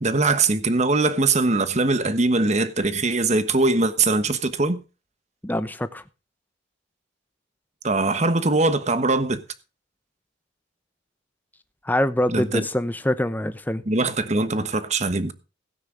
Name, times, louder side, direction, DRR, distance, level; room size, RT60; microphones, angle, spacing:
voice 1, 0.0-4.8 7.8-9.4 12.3-12.6 13.9-15.3, right 3 dB, 35° right, 1.2 m, -21 dB
voice 2, 5.4-6.0 11.8-13.8, left 1 dB, 10° left, 0.8 m, -24 dB
17.0 x 9.5 x 3.9 m
head